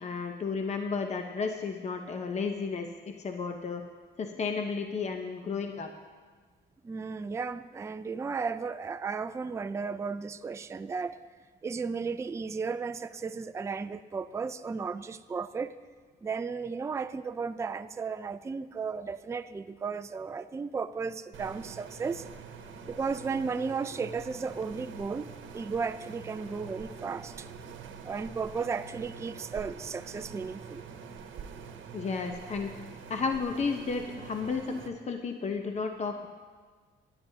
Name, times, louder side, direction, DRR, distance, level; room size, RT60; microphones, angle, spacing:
voice 1, 0.0-3.8 4.2-5.9 31.9-32.7 33.1-36.3, left 5 dB, 35° left, 4 dB, 0.8 m, -33 dB
voice 2, 6.8-11.2 11.6-15.7 16.2-22.2 22.9-25.3 25.5-27.5 28.0-30.8, right 5 dB, 15° right, 11 dB, 0.3 m, -34 dB
sound 1, 21.3-34.9, right 6 dB, 75° right, 1.0 m, -45 dB
17.5 x 9.8 x 2.8 m, 1.5 s
cardioid pair, 90°, 20 cm